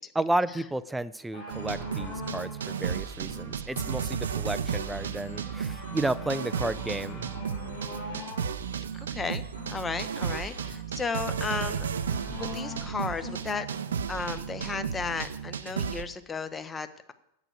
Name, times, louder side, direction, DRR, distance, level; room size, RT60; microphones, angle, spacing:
voice 1, 0.2-7.3, right 1 dB, 5° right, 15 dB, 0.4 m, -32 dB
sound 1, 1.3-14.9 15.7-15.8, left 2 dB, 65° left, 4.1 m, -44 dB
sound 2, 1.5-16.0, right 7 dB, 65° right, 0.6 m, -34 dB
voice 2, 8.9-11.8 12.4-13.7 14.1-17.1, left 5 dB, 15° left, 11 dB, 0.8 m, -34 dB
8.8 x 7.9 x 8.0 m, 0.81 s
figure-of-eight pair, 90°, 0 cm